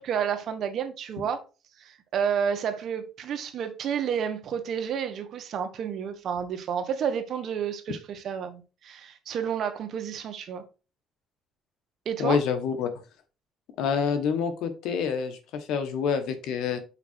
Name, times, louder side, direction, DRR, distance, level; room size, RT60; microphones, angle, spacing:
voice 1, 0.0-1.4 1.8-10.6 12.0-12.4, right 7 dB, 60° right, 1.3 m, -30 dB
voice 2, 12.2-12.9 13.8-16.8, left 6 dB, 85° left, 1.3 m, -27 dB
5.8 x 4.7 x 4.4 m
cardioid pair, 105°, 0 cm